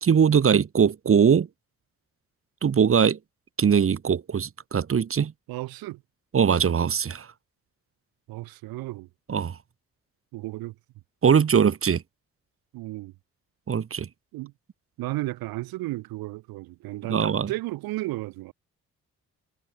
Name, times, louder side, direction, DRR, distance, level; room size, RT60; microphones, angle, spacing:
voice 1, 0.0-1.5 2.6-3.2 3.6-5.3 6.3-7.3 9.3-9.6 11.2-12.0 13.7-14.1 17.1-17.5, right 7 dB, 40° right, 1.1 m, -21 dB
voice 2, 5.5-6.0 8.3-9.1 10.3-10.8 12.7-13.1 14.3-14.5 15.0-18.5, right 19 dB, 85° right, 2.4 m, -33 dB
supercardioid pair, 55°, 35 cm